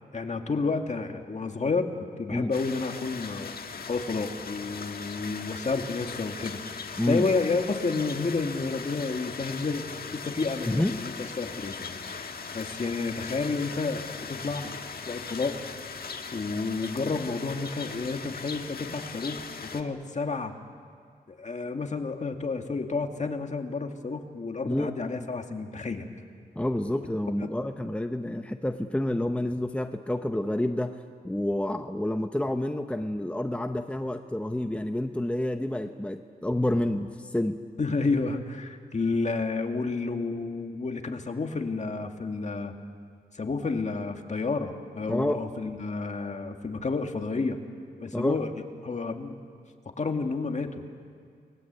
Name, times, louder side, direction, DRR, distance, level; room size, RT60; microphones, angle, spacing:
voice 1, 0.1-1.9 2.2-3.5 3.9-6.6 7.1-9.9 10.1-14.7 15.1-15.6 16.3-19.4 19.7-20.5 21.3-26.1 27.4-27.5 37.8-42.7 43.3-47.6 48.0-48.5 48.8-49.4 50.0-50.8, left 4 dB, 45° left, 4 dB, 2.1 m, -30 dB
sound 1, 2.5-19.8, left 5 dB, 70° left, 1.5 m, -39 dB
voice 2, 10.7-11.0 24.7-24.9 26.6-30.9 31.2-37.6 45.1-45.4 48.1-48.4, left 1 dB, 5° left, 6 dB, 0.9 m, -28 dB
28.5 x 20.5 x 8.2 m, 2.2 s
wide cardioid pair, 90°, 16 cm